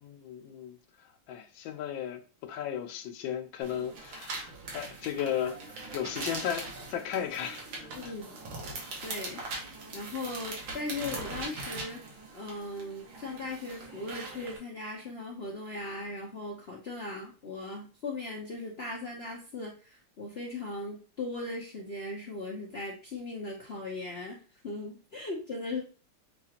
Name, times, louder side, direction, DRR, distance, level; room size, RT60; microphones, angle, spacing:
voice 1, 0.0-0.8 1.3-8.1, left 9 dB, 85° left, 1.4 m, -35 dB
sound 1, 3.6-14.6, right 3 dB, 85° right, 2.0 m, -41 dB
voice 2, 7.9-8.4 9.0-9.4 9.9-12.0 12.3-24.4 24.6-25.8, left 2 dB, 55° left, 0.7 m, -38 dB
6.6 x 2.4 x 2.8 m
omnidirectional pair, 2.1 m